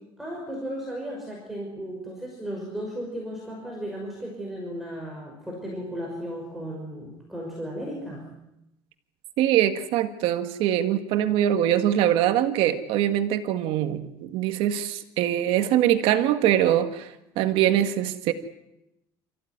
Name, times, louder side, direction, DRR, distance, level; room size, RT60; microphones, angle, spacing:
voice 1, 0.2-8.3, equal, ahead, -2 dB, 5.7 m, -35 dB
voice 2, 9.4-18.3, right 11 dB, 75° right, 8 dB, 1.8 m, -23 dB
28.5 x 15.0 x 9.7 m, 0.87 s
cardioid pair, 150°, 9 cm